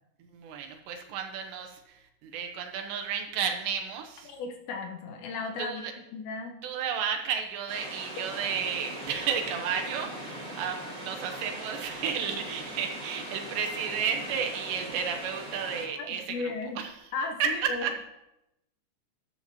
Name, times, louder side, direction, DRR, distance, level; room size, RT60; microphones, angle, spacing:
voice 1, 0.3-4.3 5.6-5.9 6.6-16.9 17.4-18.0, right 7 dB, 80° right, 4 dB, 3.2 m, -32 dB
voice 2, 4.3-5.8 6.1-6.6 16.0-16.8 17.1-17.8, left 4 dB, 85° left, 3 dB, 3.2 m, -35 dB
sound 1, 7.7-15.9, right 1 dB, 20° right, 3.0 m, -40 dB
13.5 x 11.5 x 3.0 m, 0.88 s
omnidirectional pair, 5.1 m